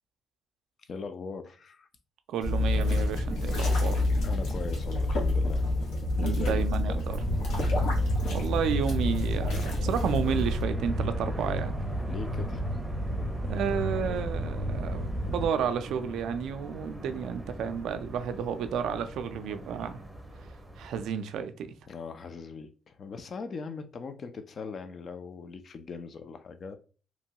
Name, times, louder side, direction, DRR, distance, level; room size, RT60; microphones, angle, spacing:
voice 1, 0.9-1.9 4.2-5.7 6.2-7.0 12.1-12.7 21.9-26.8, left 4 dB, 50° left, 0.5 m, -40 dB
voice 2, 2.3-4.0 6.2-7.2 8.3-11.8 13.5-20.0 20.8-21.7, right 7 dB, 80° right, 0.3 m, -31 dB
sound 1, 2.4-10.6, left 2 dB, 90° left, 0.9 m, -28 dB
sound 2, 7.1-15.5, equal, 20° left, 0.8 m, -32 dB
sound 3, 10.2-21.1, right 1 dB, 10° right, 0.6 m, -42 dB
2.9 x 2.2 x 2.8 m
cardioid pair, 90°, 0 cm